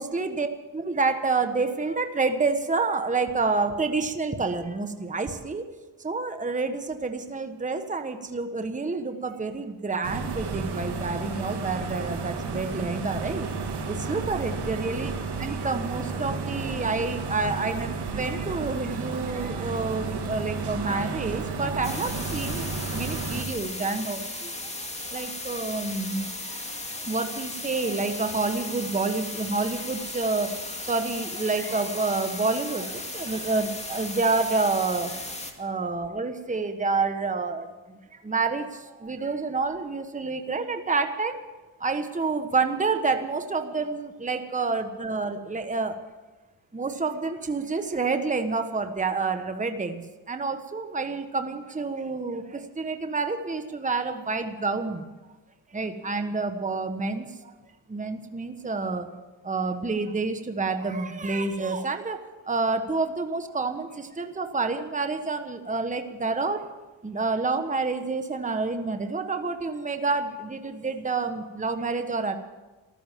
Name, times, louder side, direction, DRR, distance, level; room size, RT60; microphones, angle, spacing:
voice 1, 0.0-5.7 6.0-13.5 13.9-15.1 15.4-41.4 41.8-46.0 46.7-50.0 50.3-55.1 55.7-57.5 57.9-59.1 59.4-66.6 67.0-72.4, right 3 dB, 15° right, 7 dB, 1.3 m, -28 dB
sound 1, 10.0-23.4, right 4 dB, 55° right, 2.5 m, -32 dB
sound 2, 21.8-35.5, left 2 dB, 15° left, 2.4 m, -36 dB
14.5 x 13.0 x 7.5 m, 1.2 s
cardioid pair, 95°, 47 cm